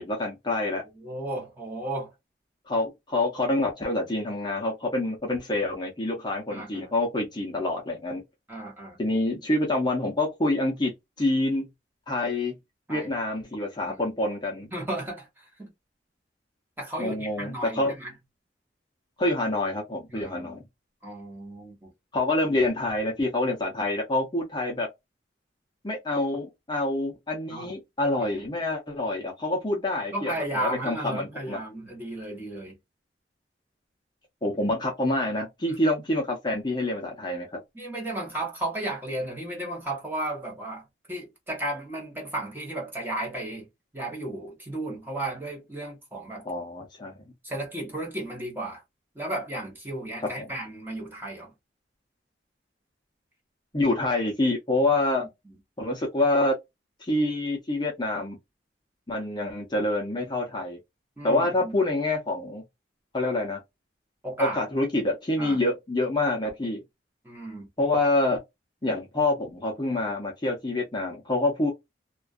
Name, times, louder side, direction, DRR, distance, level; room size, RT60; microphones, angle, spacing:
voice 1, 0.0-0.8 2.7-8.2 9.0-10.9 11.2-11.7 12.1-12.5 12.9-14.7 17.0-18.0 19.2-20.6 22.1-24.9 25.8-31.6 34.4-37.6 46.4-47.2 50.4-50.5 53.7-55.2 55.8-56.5 57.0-58.4 59.1-60.8 61.2-62.6 63.1-63.6 64.4-66.8 67.8-68.4 68.8-71.7, left 2 dB, 25° left, 0.6 m, -27 dB
voice 2, 1.0-2.1 6.5-6.9 8.5-9.0 12.9-13.1 13.9-14.0 14.7-15.3 15.6-15.7 16.8-18.1 20.1-20.6 21.0-21.9 27.5-27.7 28.3-28.4 30.1-32.7 37.7-43.7 43.9-46.5 47.4-48.8 49.1-51.5 55.2-55.5 61.2-61.7 64.2-64.6 65.4-65.6 67.2-67.7, right 1 dB, 10° right, 0.9 m, -34 dB
2.3 x 2.2 x 2.4 m
head